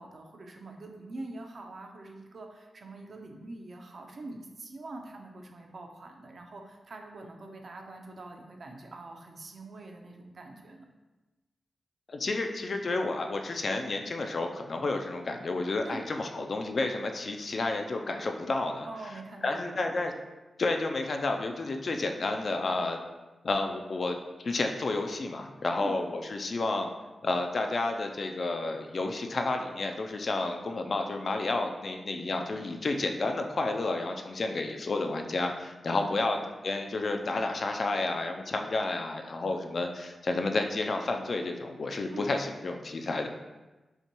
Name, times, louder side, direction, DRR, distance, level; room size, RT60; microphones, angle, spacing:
voice 1, 0.0-10.9 15.8-16.0 18.8-19.9 25.8-26.0 35.9-36.5 42.1-42.3, right 2 dB, 50° right, 3 dB, 0.5 m, -44 dB
voice 2, 12.1-18.9 19.4-20.1 20.6-23.0 23.4-24.2 24.4-26.9 27.2-36.4 36.6-43.3, left 2 dB, 45° left, 4 dB, 0.3 m, -31 dB
5.4 x 2.2 x 2.9 m, 1.1 s
wide cardioid pair, 145°, 0 cm